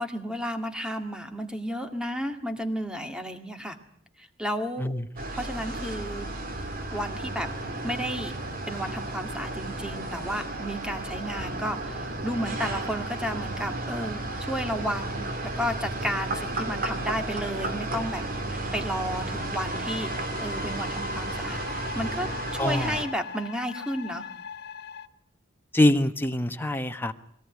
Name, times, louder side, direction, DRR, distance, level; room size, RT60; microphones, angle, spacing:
voice 1, 0.0-3.8 4.2-4.9 5.3-6.3 6.9-7.5 7.8-8.3 8.7-18.2 18.5-22.3 22.6-24.3, equal, 5° right, 5 dB, 2.1 m, -32 dB
sound 1, 5.2-23.0, right 2 dB, 50° right, 2.5 m, -33 dB
sound 2, 19.3-25.1, left 4 dB, 55° left, 1.0 m, -39 dB
voice 2, 22.6-22.9 25.7-27.1, left 1 dB, 10° left, 6 dB, 1.2 m, -24 dB
22.5 x 18.0 x 9.6 m, 0.68 s
head